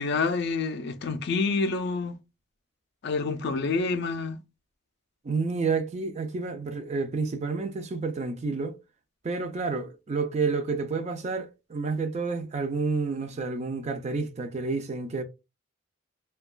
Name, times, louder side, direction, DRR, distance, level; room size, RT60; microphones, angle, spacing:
voice 1, 0.0-2.1 3.0-4.4, left 4 dB, 55° left, 0.4 m, -27 dB
voice 2, 5.2-8.8 9.2-15.2, right 4 dB, 35° right, 0.3 m, -29 dB
2.8 x 2.2 x 2.3 m
head